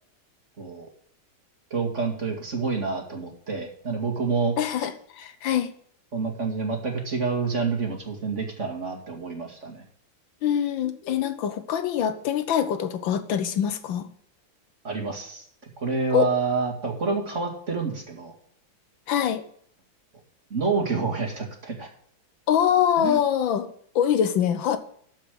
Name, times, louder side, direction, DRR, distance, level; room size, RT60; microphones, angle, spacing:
voice 1, 0.6-0.9 1.7-4.9 6.1-9.8 14.8-15.4 15.8-18.4 20.5-21.9 23.0-23.2, right 4 dB, 35° right, 2 dB, 2.3 m, -28 dB
voice 2, 4.6-5.7 10.4-14.1 16.1-16.3 19.1-19.4 22.5-24.8, left 9 dB, 75° left, 10 dB, 1.6 m, -24 dB
13.0 x 5.4 x 6.5 m, 0.63 s
omnidirectional pair, 2.2 m